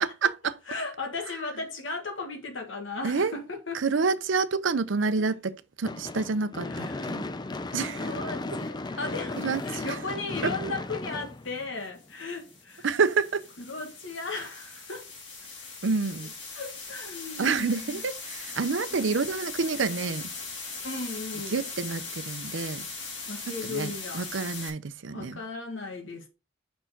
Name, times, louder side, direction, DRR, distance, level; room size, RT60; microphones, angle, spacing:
voice 1, 0.0-0.6 3.0-3.3 3.7-7.3 7.7-8.1 9.4-10.0 10.4-10.5 12.8-13.5 15.8-16.3 17.4-20.3 21.5-22.9 23.7-25.4, right 4 dB, 75° right, 0.6 m, -28 dB
voice 2, 0.7-4.1 6.6-7.3 7.7-12.9 13.7-15.1 16.6-18.0 18.9-19.2 20.8-21.6 23.3-24.3 25.1-26.3, left 3 dB, 85° left, 1.7 m, -36 dB
Gunshot gunfire / Fireworks, 5.8-12.1, left 2 dB, 20° left, 0.5 m, -35 dB
sound 1, 9.4-9.7 11.8-24.7, left 4 dB, 70° left, 3.0 m, -40 dB
5.6 x 4.5 x 5.8 m
head